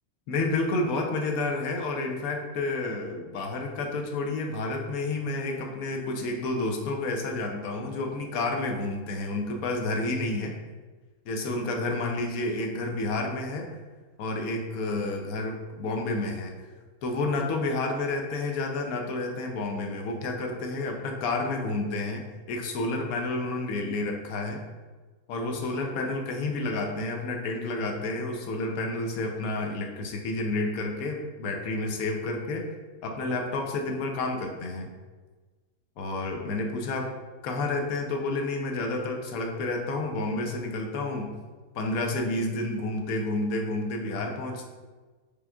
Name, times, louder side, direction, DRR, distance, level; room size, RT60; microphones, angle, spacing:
voice 1, 0.3-10.6 11.2-13.7 14.2-16.7 17.0-24.6 25.3-32.7 33.0-34.9 36.0-37.1 37.4-41.4 41.7-44.7, left 2 dB, 85° left, 2 dB, 1.1 m, -30 dB
5.0 x 3.1 x 2.3 m, 1.3 s
omnidirectional pair, 1.5 m